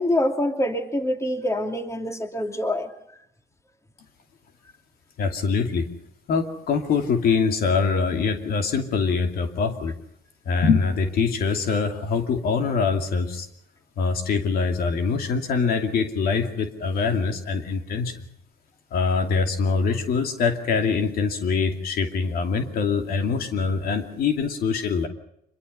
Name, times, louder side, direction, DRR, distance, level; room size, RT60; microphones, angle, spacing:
voice 1, 0.0-2.9, left 1 dB, 15° left, 5 dB, 2.8 m, -25 dB
voice 2, 5.2-5.9 6.3-9.9 10.5-13.5 14.0-18.2 18.9-25.1, left 5 dB, 60° left, 5 dB, 2.6 m, -24 dB
25.5 x 22.5 x 5.5 m, 0.78 s
cardioid pair, 110°, 17 cm